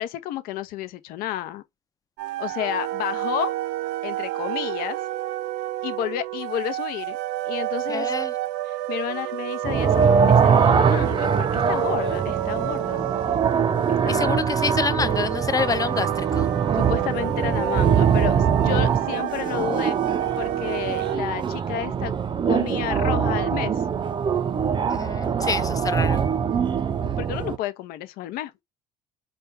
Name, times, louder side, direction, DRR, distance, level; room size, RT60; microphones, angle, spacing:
voice 1, 0.0-1.6 2.4-3.5 4.0-5.0 5.8-7.2 7.5-8.1 8.6-13.1 13.9-14.5 16.7-20.0 20.4-22.1 22.4-23.8 27.0-28.6, left 11 dB, 70° left, 0.7 m, -31 dB
sound 1, 2.2-21.2, right 15 dB, 85° right, 0.5 m, -30 dB
voice 2, 7.9-8.3 14.1-16.5 24.9-26.2, left 5 dB, 20° left, 0.6 m, -27 dB
sound 2, 9.6-27.6, right 7 dB, 30° right, 0.5 m, -23 dB
4.3 x 2.3 x 3.3 m
supercardioid pair, 80°, 16 cm